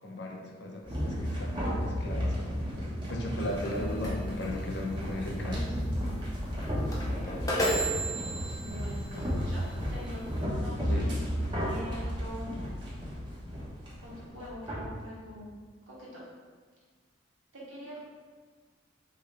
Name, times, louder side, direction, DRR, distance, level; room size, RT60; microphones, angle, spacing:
voice 1, 0.0-2.6 3.1-5.6 10.8-11.1, left 1 dB, 60° left, 0 dB, 0.7 m, -36 dB
sound 1, 0.8-14.9, equal, 25° right, 1.0 m, -33 dB
sound 2, 3.4-10.4, right 1 dB, 20° left, 0.6 m, -36 dB
voice 2, 6.7-7.8 8.5-11.2 11.5-12.6 14.0-15.5 15.9-16.1 17.5-18.0, left 1 dB, 90° right, -6 dB, 1.4 m, -44 dB
4.7 x 3.2 x 3.2 m, 1.5 s
head